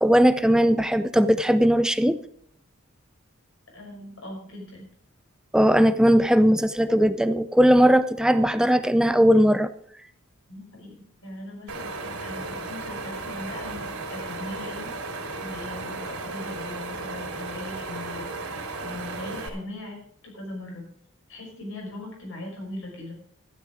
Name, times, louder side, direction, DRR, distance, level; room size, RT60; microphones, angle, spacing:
voice 1, 0.0-2.2 5.5-9.7, equal, 5° right, 12 dB, 0.5 m, -19 dB
voice 2, 3.7-4.9 10.5-18.4 18.8-20.9 21.3-23.2, left 1 dB, 60° left, 0 dB, 5.4 m, -40 dB
Wind, 11.7-19.5, right 3 dB, 75° right, 3.4 m, -35 dB
12.5 x 11.5 x 4.9 m, 0.63 s
head